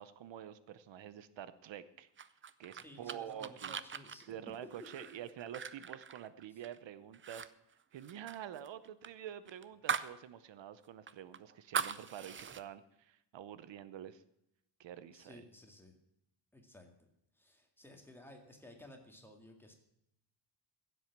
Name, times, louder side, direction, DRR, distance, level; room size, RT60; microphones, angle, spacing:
voice 1, 0.0-2.1 2.6-3.7 4.3-7.5 7.9-14.2 14.8-15.4, right 10 dB, 85° right, 14 dB, 0.9 m, -48 dB
sound 1, 2.2-6.8 7.1-7.5 7.7-10.2 10.5-10.6 11.1-12.6, right 7 dB, 30° right, 0.5 m, -41 dB
voice 2, 2.8-4.3 12.4-12.5 15.1-16.0 16.5-16.9 17.3-19.8, left 1 dB, 5° left, 2 dB, 2.0 m, -56 dB
15.5 x 7.8 x 5.9 m, 0.82 s
wide cardioid pair, 160°, 43 cm